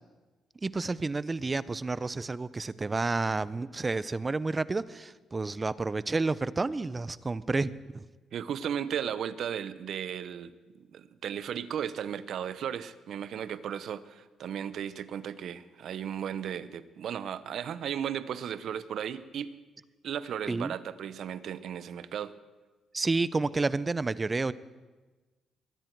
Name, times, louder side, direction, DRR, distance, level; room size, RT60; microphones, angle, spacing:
voice 1, 0.6-8.1 20.5-20.7 22.9-24.5, right 3 dB, 25° right, 18 dB, 0.5 m, -30 dB
voice 2, 8.3-19.5 20.0-22.3, right 9 dB, 70° right, 15 dB, 0.7 m, -35 dB
22.0 x 10.0 x 4.6 m, 1.2 s
cardioid pair, 90°, 0 cm